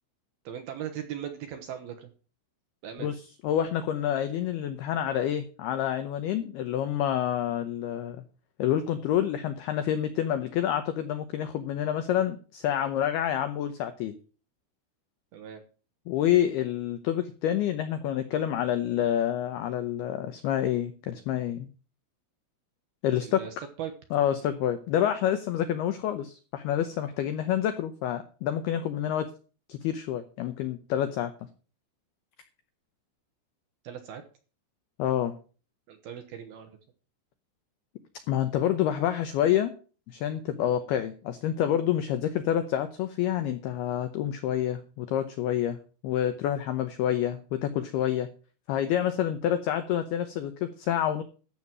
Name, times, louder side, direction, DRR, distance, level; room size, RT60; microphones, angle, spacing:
voice 1, 0.4-2.1 2.8-3.2 15.3-15.6 23.2-23.9 24.4-24.5 33.8-34.2 35.9-36.8, right 9 dB, 70° right, 6 dB, 2.5 m, -39 dB
voice 2, 3.4-8.2 8.6-14.1 16.1-21.7 23.0-23.4 24.1-29.3 29.7-31.3 35.0-35.3 38.3-39.7 40.1-45.8 46.0-48.3 48.7-51.2, left 10 dB, 80° left, 9 dB, 2.2 m, -28 dB
14.0 x 7.2 x 6.1 m, 0.38 s
omnidirectional pair, 5.7 m